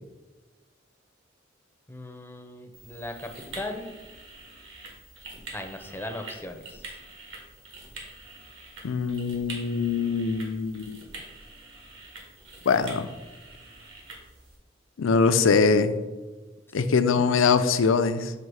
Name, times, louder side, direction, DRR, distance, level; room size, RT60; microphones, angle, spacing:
voice 1, 1.9-3.9 5.5-7.0 17.1-17.2, left 1 dB, 10° left, 5 dB, 0.5 m, -38 dB
sound 1, 2.7-14.6, right 2 dB, 70° right, 1.5 m, -45 dB
voice 2, 8.8-11.0 12.7-13.1 15.0-16.0 16.7-18.3, left 5 dB, 75° left, 10 dB, 0.4 m, -23 dB
7.5 x 2.8 x 4.7 m, 1.2 s
head